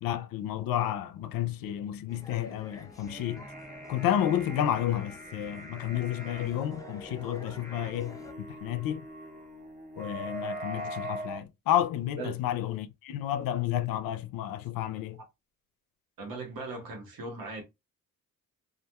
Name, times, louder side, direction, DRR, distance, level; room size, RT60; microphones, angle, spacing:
voice 1, 0.0-3.4 3.9-9.0 10.0-15.2, left 11 dB, 80° left, 0.5 m, -31 dB
sound 1, 2.1-8.3, left 2 dB, 10° left, 0.4 m, -49 dB
sound 2, 2.9-11.4, right 1 dB, 20° right, 0.9 m, -42 dB
voice 2, 16.2-17.6, right 3 dB, 80° right, 1.1 m, -38 dB
2.4 x 2.2 x 2.8 m
cardioid pair, 75°, 34 cm